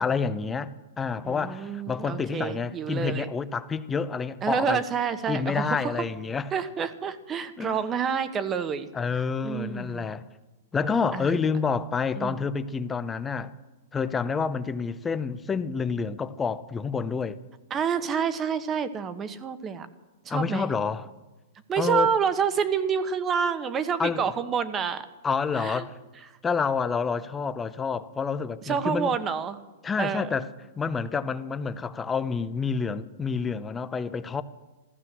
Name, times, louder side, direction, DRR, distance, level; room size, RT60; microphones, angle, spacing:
voice 1, 0.0-4.8 5.3-6.5 7.6-7.8 8.9-10.2 10.7-13.5 13.9-17.4 20.3-21.1 21.8-22.1 24.0-24.2 25.2-26.0 26.4-29.2 29.8-30.5 30.8-34.4, left 5 dB, 15° left, 0.7 m, -28 dB
voice 2, 1.2-3.3 4.4-6.0 6.5-8.9 9.4-10.1 11.1-11.3 12.2-12.4 17.7-19.9 20.2-20.7 21.7-25.1 25.5-25.9 28.6-29.6 30.0-30.4, right 7 dB, 20° right, 1.1 m, -28 dB
14.0 x 13.5 x 7.4 m
hypercardioid pair, 135°, 0 cm